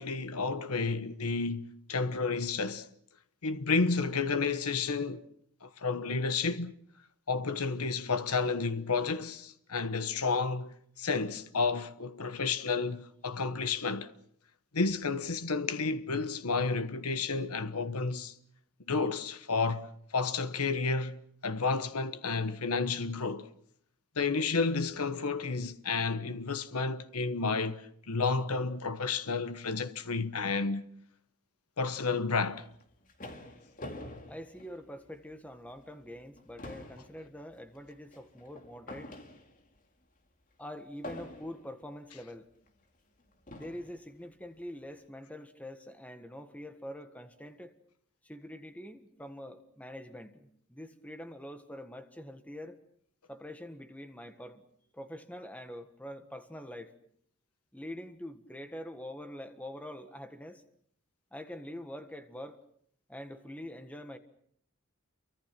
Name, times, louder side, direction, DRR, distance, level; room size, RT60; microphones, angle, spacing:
voice 1, 0.0-2.9 3.4-5.2 5.6-6.7 7.3-14.1 14.7-18.3 18.9-23.5 24.2-30.8 31.8-32.6, left 4 dB, 90° left, 1.2 m, -31 dB
sound 1, 32.7-35.3 35.8-35.9 36.3-39.8 41.0-41.8 42.7-42.8 43.5-44.0, left 1 dB, 35° left, 2.5 m, -46 dB
voice 2, 34.3-39.2 40.6-42.5 43.5-47.7 48.2-52.8 53.3-54.6 54.9-56.9 57.7-60.6 61.3-62.6 63.1-64.2, left 1 dB, 5° left, 1.6 m, -45 dB
29.0 x 24.0 x 6.0 m
head